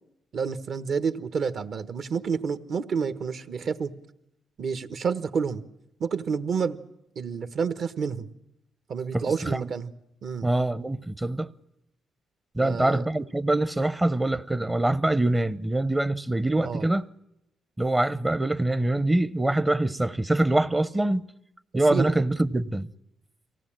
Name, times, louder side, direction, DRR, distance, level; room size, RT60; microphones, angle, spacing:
voice 1, 0.3-3.9 4.6-5.6 6.0-6.8 7.1-8.3 8.9-9.9 10.2-10.5 12.6-13.1 16.6-16.9 21.9-22.2, right 6 dB, 55° right, 1.3 m, -29 dB
voice 2, 9.1-9.6 10.4-11.5 12.5-17.0 17.8-21.2 21.7-22.9, right 2 dB, 15° right, 0.8 m, -24 dB
24.0 x 17.5 x 8.9 m
cardioid pair, 90°, 0 cm